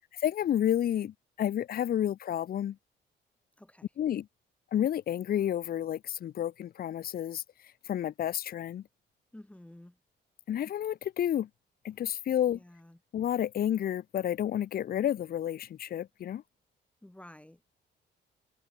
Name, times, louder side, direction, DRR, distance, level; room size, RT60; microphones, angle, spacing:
voice 1, 0.2-2.7 4.0-4.2 4.7-7.4 7.9-8.8 10.5-11.5 11.8-12.6 13.1-16.4, left 10 dB, 50° left, 0.6 m, -30 dB
voice 2, 3.6-3.9 9.3-10.0 12.5-13.0 17.0-17.7, left 1 dB, 5° left, 1.6 m, -52 dB
cardioid pair, 90°, 20 cm